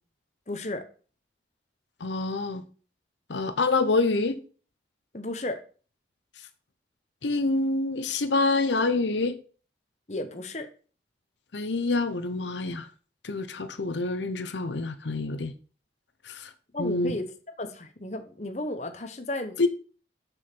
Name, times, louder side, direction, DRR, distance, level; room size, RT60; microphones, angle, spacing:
voice 1, 0.5-0.9 5.1-5.6 10.1-10.7 16.7-17.3 17.6-19.6, left 1 dB, 40° left, 1.0 m, -33 dB
voice 2, 2.0-2.6 3.3-4.4 7.2-9.4 11.5-12.9 13.2-15.5 16.2-16.5 16.8-17.1 19.6-19.7, left 3 dB, 90° left, 0.8 m, -26 dB
6.3 x 6.3 x 5.9 m
head